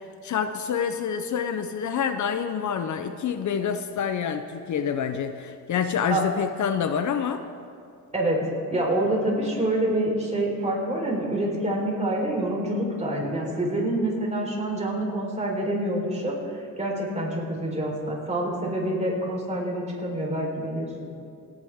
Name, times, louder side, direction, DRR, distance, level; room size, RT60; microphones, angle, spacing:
voice 1, 0.2-7.4, left 7 dB, 60° left, 9 dB, 0.7 m, -27 dB
voice 2, 8.7-16.3 16.8-21.1, right 1 dB, 20° right, -2 dB, 4.1 m, -26 dB
28.5 x 9.6 x 3.6 m, 2.4 s
cardioid pair, 110°, 32 cm